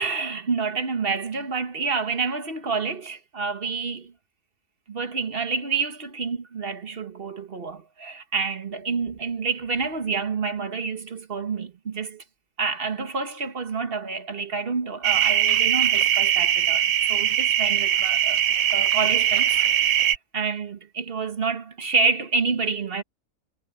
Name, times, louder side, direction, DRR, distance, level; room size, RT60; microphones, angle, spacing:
voice 1, 0.0-4.1 4.9-12.2 12.6-18.4 18.7-19.5 19.8-23.0, right 5 dB, 45° right, 1.5 m, -28 dB
sound 1, 15.0-20.2, right 11 dB, 80° right, 1.3 m, -21 dB
omnidirectional pair, 1.5 m